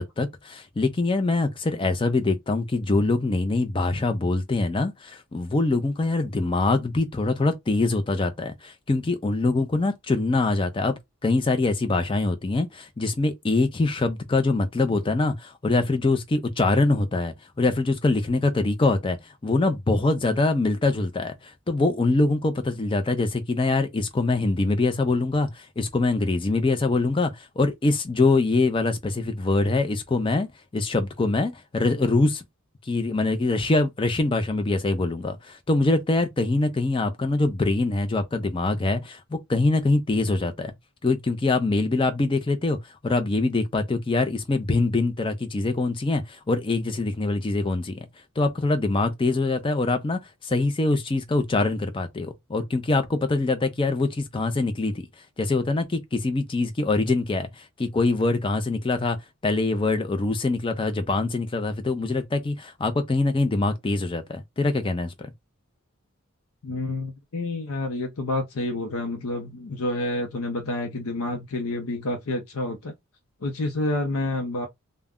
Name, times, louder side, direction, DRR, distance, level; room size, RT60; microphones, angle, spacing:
voice 1, 0.0-19.2 19.4-30.5 30.7-32.4 32.9-40.7 41.0-42.8 43.0-48.1 48.4-55.1 55.4-59.2 59.4-65.3, left 3 dB, 25° left, 0.4 m, -24 dB
voice 2, 66.6-72.9 73.4-74.7, left 2 dB, 75° left, 0.6 m, -29 dB
2.3 x 2.1 x 3.5 m
head